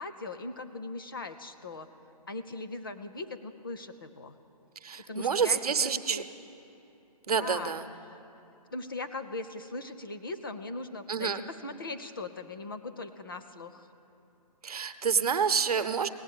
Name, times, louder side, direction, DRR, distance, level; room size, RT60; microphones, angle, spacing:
voice 1, 0.0-1.9 2.3-4.4 5.1-6.3 7.4-8.2 8.7-13.9, left 3 dB, 35° left, 9 dB, 0.5 m, -39 dB
voice 2, 4.8-6.2 7.3-7.8 11.1-11.4 14.6-16.1, right 6 dB, 70° right, 10 dB, 0.8 m, -28 dB
18.0 x 8.1 x 9.9 m, 3.0 s
hypercardioid pair, 180°, 20 cm